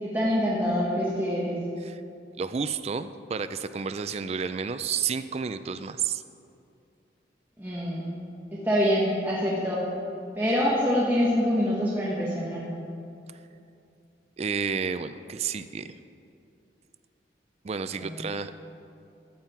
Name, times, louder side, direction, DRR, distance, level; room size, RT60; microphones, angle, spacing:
voice 1, 0.0-1.6 7.6-8.1 8.5-9.8 10.4-12.7 18.0-18.1, equal, 10° right, -7 dB, 1.5 m, -25 dB
voice 2, 2.4-6.2 14.4-15.9 17.6-18.5, right 6 dB, 35° right, 12 dB, 0.4 m, -31 dB
14.5 x 9.1 x 4.4 m, 2.6 s
head